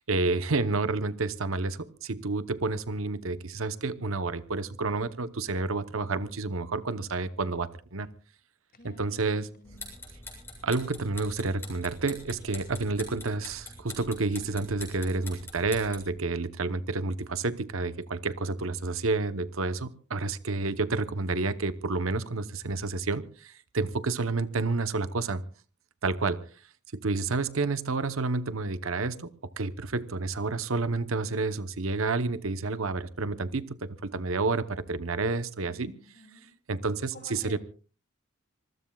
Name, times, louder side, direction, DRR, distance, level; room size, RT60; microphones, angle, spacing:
voice 1, 0.0-8.1 8.8-9.5 10.6-25.4 26.0-26.4 26.9-29.3 29.6-35.9 36.7-37.6, right 3 dB, 70° right, 13 dB, 1.0 m, -30 dB
voice 2, 8.7-9.9 35.6-36.5 37.1-37.6, left 2 dB, 45° left, 5 dB, 6.2 m, -52 dB
sound 1, 9.7-16.1, left 2 dB, 10° left, 7.5 m, -44 dB
26.5 x 20.5 x 2.4 m, 0.38 s
head